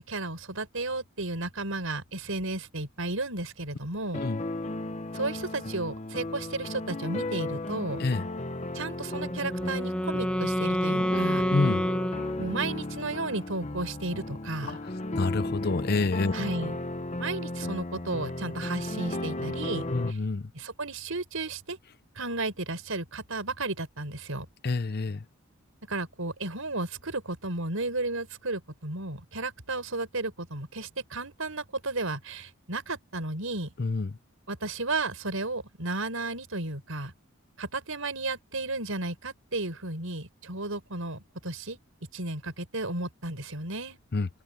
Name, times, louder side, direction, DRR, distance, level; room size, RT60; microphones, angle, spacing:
voice 1, 0.0-4.2 5.1-8.0 8.7-11.4 12.4-14.8 16.3-16.8 17.2-20.2 20.5-21.8 22.2-24.5 25.9-33.7 34.5-37.1 37.6-41.8 42.1-44.0, right 2 dB, 70° right, 5.3 m, -33 dB
sound 1, 4.1-20.1, left 1 dB, 30° left, 1.1 m, -35 dB
Wind instrument woodwind instrument, 9.1-13.0, equal, 5° left, 0.9 m, -29 dB
voice 2, 11.5-11.8 15.2-16.3 19.9-20.5 24.6-25.2 33.8-34.1 44.1-44.3, left 3 dB, 50° left, 0.7 m, -27 dB
open air
head